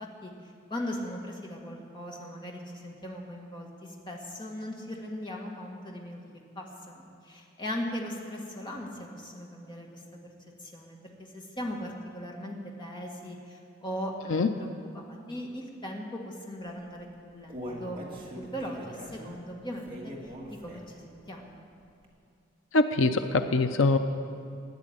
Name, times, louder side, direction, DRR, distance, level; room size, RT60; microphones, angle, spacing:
voice 1, 0.0-6.2 6.6-10.0 10.6-14.7 14.9-20.1 20.5-21.6, equal, 25° left, -1 dB, 1.8 m, -39 dB
Human voice, 17.0-21.1 21.5-21.6 22.0-22.1, equal, 25° right, 1.9 m, -42 dB
voice 2, 22.7-24.0, left 3 dB, 85° left, 8 dB, 0.6 m, -23 dB
13.5 x 9.6 x 9.0 m, 2.5 s
head